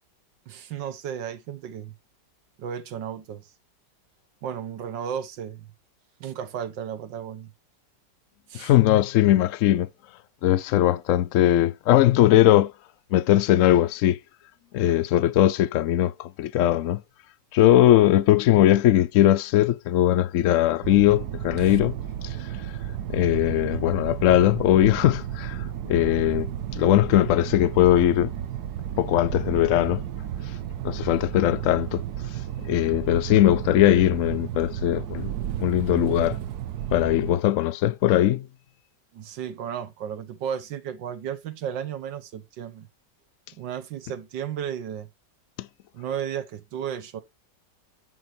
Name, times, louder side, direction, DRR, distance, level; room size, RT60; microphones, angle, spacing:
voice 1, 0.5-1.9 2.6-3.5 4.4-5.7 6.2-7.5 8.5-8.7 21.6-21.8 39.1-42.9 43.5-45.1 45.9-47.2, right 8 dB, 85° right, 1.7 m, -34 dB
voice 2, 8.5-9.9 10.4-12.7 13.1-14.2 14.7-17.0 17.5-21.9 22.2-22.4 23.1-28.3 29.0-30.0 30.8-32.0 32.6-35.3 35.6-36.4 36.9-38.5, left 13 dB, 75° left, 0.7 m, -20 dB
sound 1, 20.8-37.4, right 10 dB, 65° right, 1.2 m, -33 dB
9.4 x 4.7 x 4.4 m
omnidirectional pair, 1.9 m